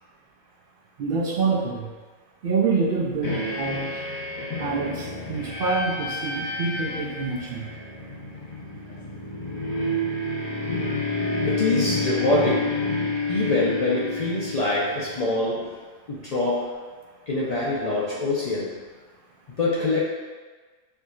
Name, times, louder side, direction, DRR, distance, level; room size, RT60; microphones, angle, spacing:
voice 1, 1.0-1.9 2.4-3.9 4.6-7.7, right 4 dB, 65° right, -3 dB, 0.5 m, -26 dB
sound 1, 3.2-15.3, left 2 dB, 40° left, 0.8 m, -29 dB
voice 2, 11.5-13.0 13.3-15.8 16.1-16.8 17.3-18.8 19.6-20.0, left 2 dB, 70° left, -7 dB, 0.3 m, -25 dB
4.5 x 2.7 x 2.3 m, 1.4 s
omnidirectional pair, 1.4 m